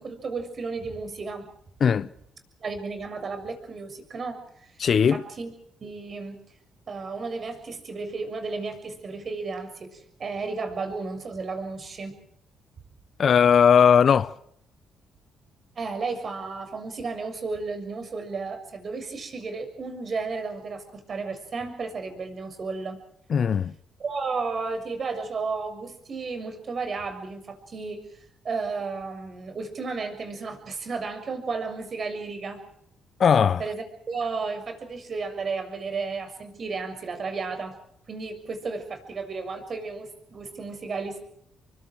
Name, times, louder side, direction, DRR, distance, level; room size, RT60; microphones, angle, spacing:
voice 1, 0.0-1.5 2.6-4.8 5.1-5.5 5.8-6.4 6.9-12.2 15.7-23.0 24.0-28.2 28.4-32.6 33.6-37.8 38.1-41.2, right 4 dB, 45° right, 6.7 m, -33 dB
voice 2, 4.8-5.2 13.2-14.3 23.3-23.8 33.2-33.6, left 7 dB, 50° left, 0.8 m, -18 dB
29.5 x 24.0 x 4.8 m
cardioid pair, 90°, 0 cm